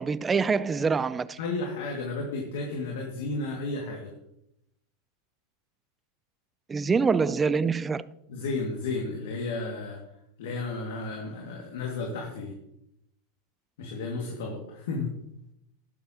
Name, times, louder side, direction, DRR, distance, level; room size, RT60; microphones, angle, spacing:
voice 1, 0.0-1.4 6.7-8.0, right 5 dB, 20° right, 0.5 m, -25 dB
voice 2, 1.4-4.1 8.3-10.0 10.4-12.5 13.8-15.1, left 3 dB, 70° left, 2.3 m, -33 dB
12.0 x 11.0 x 3.0 m
hypercardioid pair, 105°, 0 cm